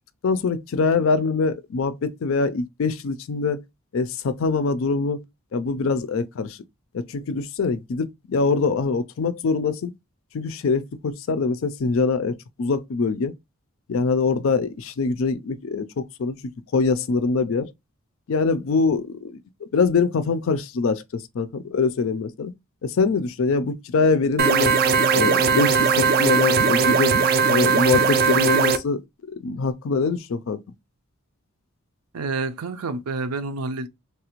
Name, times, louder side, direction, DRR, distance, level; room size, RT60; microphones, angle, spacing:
voice 1, 0.2-3.6 3.9-5.2 5.5-6.6 6.9-9.9 10.3-13.3 13.9-16.4 16.7-17.7 18.3-22.5 22.8-24.7 25.1-27.1 27.5-29.0 29.3-30.6, left 4 dB, 60° left, 0.4 m, -23 dB
sound 1, 24.4-28.8, right 5 dB, 40° right, 0.3 m, -19 dB
voice 2, 32.1-33.9, right 3 dB, 90° right, 0.6 m, -28 dB
3.3 x 2.4 x 2.9 m
head